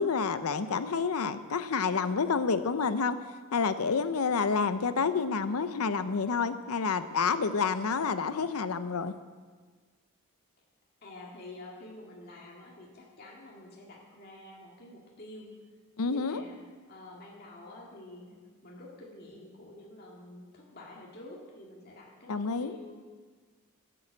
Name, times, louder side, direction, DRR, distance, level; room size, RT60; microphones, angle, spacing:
voice 1, 0.0-3.2 3.5-9.1 16.0-16.4 22.3-22.8, left 5 dB, 80° left, 12 dB, 0.6 m, -29 dB
voice 2, 11.0-15.5 16.1-16.6 16.9-18.4 18.6-23.0, left 2 dB, 45° left, -3 dB, 2.0 m, -48 dB
11.5 x 7.7 x 7.9 m, 1.5 s
head